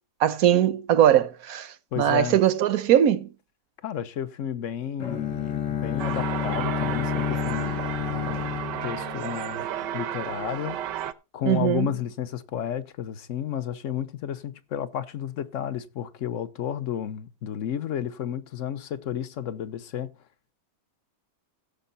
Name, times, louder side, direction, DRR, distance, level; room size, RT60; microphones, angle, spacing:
voice 1, 0.2-3.3 11.5-11.9, right 11 dB, 65° right, 1.1 m, -21 dB
voice 2, 1.9-2.4 3.8-9.7 9.9-10.8 11.3-20.1, left 9 dB, 55° left, 1.1 m, -32 dB
Bowed string instrument, 5.0-9.9, left 8 dB, 80° left, 2.3 m, -30 dB
sound 1, 6.0-11.1, right 10 dB, 80° right, 1.4 m, -33 dB
16.0 x 6.7 x 4.0 m
omnidirectional pair, 1.9 m